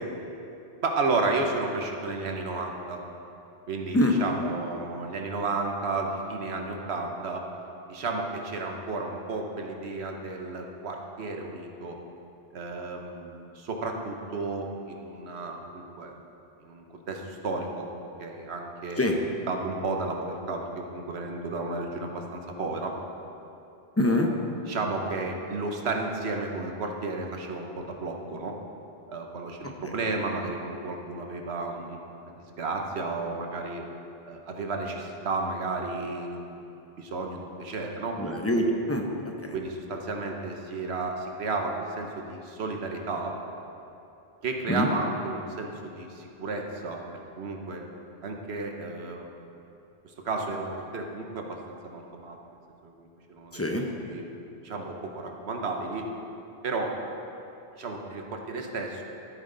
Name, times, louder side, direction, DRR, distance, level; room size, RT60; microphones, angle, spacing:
voice 1, 0.8-3.0 3.7-7.5 7.9-12.0 12.5-16.1 16.6-17.9 18.2-22.9 24.6-28.6 29.1-33.8 34.3-36.6 37.0-38.2 39.5-43.4 44.4-47.0 47.4-47.8 48.2-49.3 50.0-52.4 52.8-54.3 54.6-56.1 56.6-56.9 57.8-59.0, right 3 dB, 80° right, 2 dB, 1.3 m, -33 dB
voice 2, 24.0-24.3 38.2-39.0 44.7-44.9 53.5-53.8, left 1 dB, 15° left, 1 dB, 0.8 m, -24 dB
13.5 x 8.1 x 3.9 m, 2.8 s
omnidirectional pair, 1.1 m